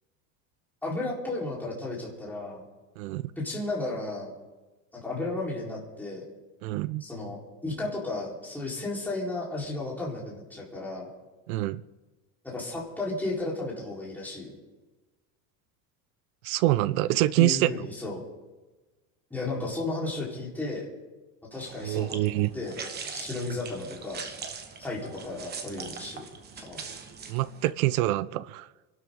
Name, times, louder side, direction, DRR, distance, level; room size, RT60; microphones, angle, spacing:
voice 1, 0.8-2.6 3.4-4.3 4.9-6.2 7.0-11.1 12.4-14.5 17.4-18.2 19.3-20.9 21.5-22.9 23.1-24.2 24.8-26.2 26.6-26.8, left 2 dB, 5° left, -5 dB, 4.2 m, -34 dB
voice 2, 3.0-3.3 6.6-7.0 11.5-11.8 16.4-17.8 21.8-22.5 27.3-28.7, right 16 dB, 85° right, 18 dB, 0.8 m, -25 dB
sound 1, 21.5-27.7, right 5 dB, 25° right, 1.3 m, -41 dB
28.5 x 12.5 x 3.8 m, 1.2 s
cardioid pair, 160°, 41 cm